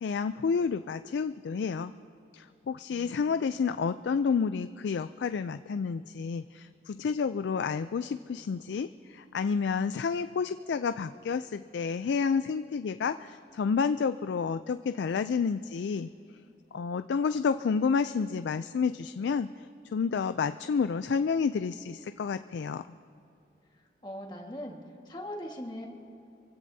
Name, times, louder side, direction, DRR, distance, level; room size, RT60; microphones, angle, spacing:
voice 1, 0.0-1.9 2.3-16.1 16.7-19.5 19.9-22.8, left 5 dB, 85° left, 11 dB, 0.4 m, -30 dB
voice 2, 2.9-3.5 24.0-24.8 25.0-25.9, equal, 25° left, 1 dB, 1.6 m, -40 dB
26.0 x 16.0 x 2.7 m, 3.0 s
head